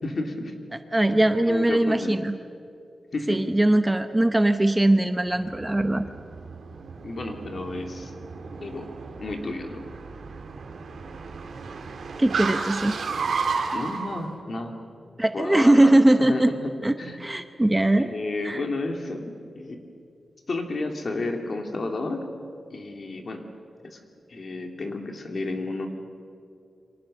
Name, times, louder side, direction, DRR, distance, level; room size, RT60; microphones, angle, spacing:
voice 1, 0.0-0.5 1.1-2.2 3.1-3.4 7.0-8.1 8.6-8.9 9.2-9.9 13.7-14.8 15.3-17.2 18.0-19.8 20.5-22.3 22.7-23.4 23.8-24.0 24.3-25.9, left 2 dB, 45° left, 4 dB, 2.8 m, -31 dB
voice 2, 0.9-2.3 3.3-6.0 12.2-13.0 15.2-16.5 16.8-18.1 18.4-18.6, right 1 dB, 10° right, 8 dB, 0.8 m, -20 dB
Car, 5.3-14.2, right 4 dB, 75° right, 2.4 m, -33 dB
29.5 x 25.0 x 6.7 m, 2.5 s
wide cardioid pair, 160°, 0 cm